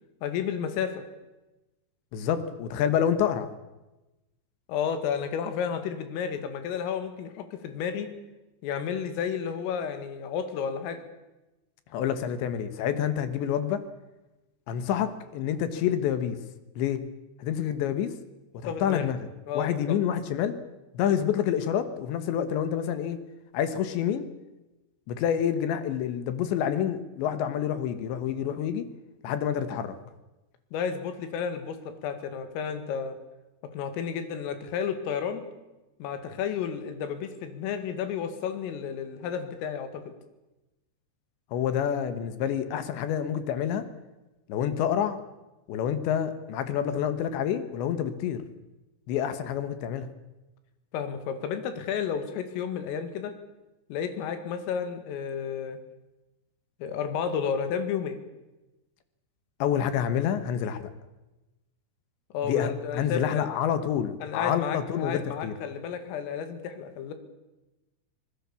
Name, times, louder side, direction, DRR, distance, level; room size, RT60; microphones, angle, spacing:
voice 1, 0.2-1.0 4.7-8.1 8.6-11.0 18.7-19.1 19.5-20.0 30.7-33.2 33.7-35.4 36.0-40.0 50.9-53.3 53.9-55.8 56.8-58.2 62.3-63.5 64.2-67.1, left 7 dB, 90° left, 9 dB, 4.7 m, -32 dB
voice 2, 2.1-3.5 11.9-13.8 14.7-16.4 16.8-17.0 17.4-18.1 18.5-19.2 19.5-20.6 20.9-23.2 23.5-24.2 25.1-28.9 29.2-29.9 41.5-43.8 44.5-45.2 45.7-48.4 49.1-50.1 59.6-60.8 62.4-65.5, left 9 dB, 70° left, 11 dB, 3.4 m, -28 dB
24.5 x 20.0 x 7.1 m, 1.0 s
omnidirectional pair, 5.8 m